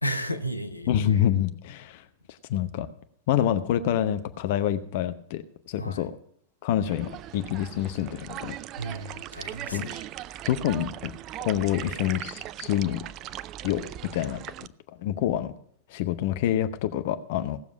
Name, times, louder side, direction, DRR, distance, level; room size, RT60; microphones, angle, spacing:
voice 1, 0.0-1.0 5.8-6.0 8.8-10.1, right 1 dB, 85° left, 0.9 m, -33 dB
voice 2, 0.9-2.9 3.3-5.4 5.7-6.1 6.6-8.6 9.7-9.9 10.5-11.1 11.4-13.0 13.6-14.7 15.0-15.5 15.9-17.6, left 11 dB, 50° left, 0.8 m, -27 dB
sound 1, 6.8-14.7, right 13 dB, 35° right, 0.4 m, -39 dB
17.0 x 7.1 x 6.0 m
figure-of-eight pair, 90°, 0 cm